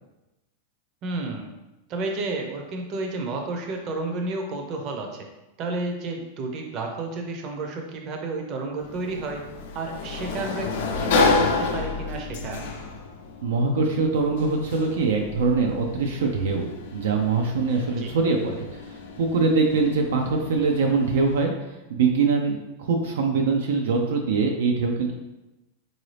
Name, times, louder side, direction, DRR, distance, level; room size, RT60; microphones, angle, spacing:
voice 1, 1.0-1.5 1.9-5.3 5.6-9.4 9.7-12.6 18.0-18.1, right 3 dB, 45° right, 2 dB, 0.7 m, -31 dB
Sliding door, 8.8-21.4, left 4 dB, 70° left, 0.5 m, -30 dB
voice 2, 13.4-18.8 19.2-21.5 21.9-25.1, right 4 dB, 80° right, 2 dB, 0.5 m, -23 dB
3.7 x 2.7 x 3.3 m, 1.0 s
hypercardioid pair, 120°, 0 cm